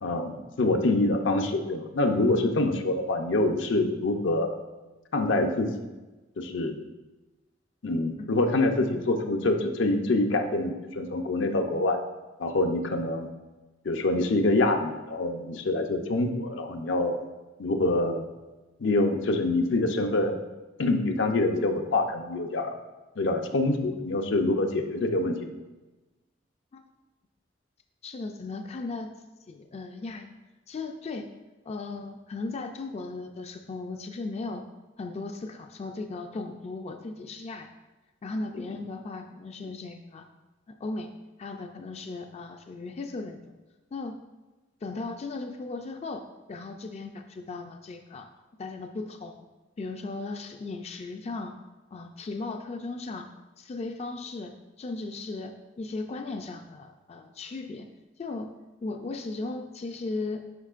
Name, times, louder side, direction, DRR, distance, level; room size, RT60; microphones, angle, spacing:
voice 1, 0.0-4.5 5.1-5.7 6.4-6.8 7.8-12.0 12.4-13.3 13.8-17.2 17.6-18.3 18.8-20.4 20.8-22.7 23.2-25.5, left 2 dB, 80° left, 4 dB, 0.6 m, -25 dB
voice 2, 28.0-29.1 29.5-30.3 30.7-31.3 31.7-34.6 35.0-37.7 38.2-40.2 40.7-41.1 41.4-43.4 43.9-44.2 44.8-46.2 46.5-48.3 48.6-49.5 49.8-51.5 51.9-53.3 53.6-57.9 58.2-58.5 58.8-60.4, left 3 dB, 35° left, 5 dB, 0.3 m, -36 dB
8.2 x 5.5 x 2.5 m, 1.1 s
head